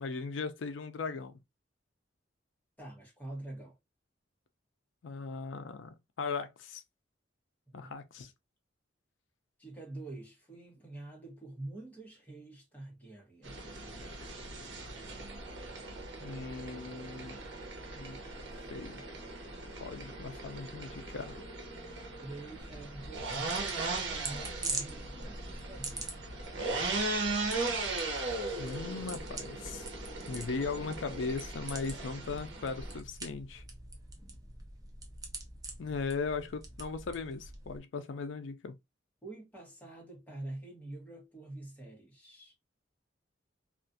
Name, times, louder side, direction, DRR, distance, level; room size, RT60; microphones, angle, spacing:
voice 1, 0.0-1.3 5.0-6.8 7.7-8.3 16.2-17.4 17.9-18.2 18.7-19.0 19.8-21.4 28.6-29.8 30.3-33.6 35.8-38.7, left 4 dB, 80° left, 0.4 m, -38 dB
voice 2, 2.8-3.8 7.7-7.9 9.6-13.6 22.2-26.2 39.2-42.5, right 2 dB, 10° left, 1.0 m, -46 dB
sound 1, 13.4-33.0, right 3 dB, 80° right, 0.7 m, -38 dB
sound 2, 22.6-37.8, right 3 dB, 20° right, 0.5 m, -45 dB
2.4 x 2.3 x 2.5 m
head